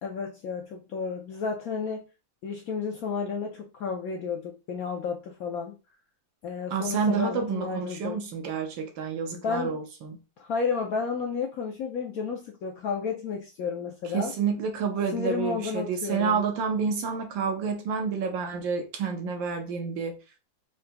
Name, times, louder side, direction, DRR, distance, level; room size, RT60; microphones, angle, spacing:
voice 1, 0.0-2.0 2.4-5.7 6.4-8.2 9.3-9.8 10.4-14.3 15.1-16.4, left 5 dB, 70° left, 0.9 m, -32 dB
voice 2, 6.7-10.2 14.1-20.2, right 6 dB, 80° right, 1.6 m, -29 dB
4.5 x 3.8 x 2.2 m
omnidirectional pair, 2.1 m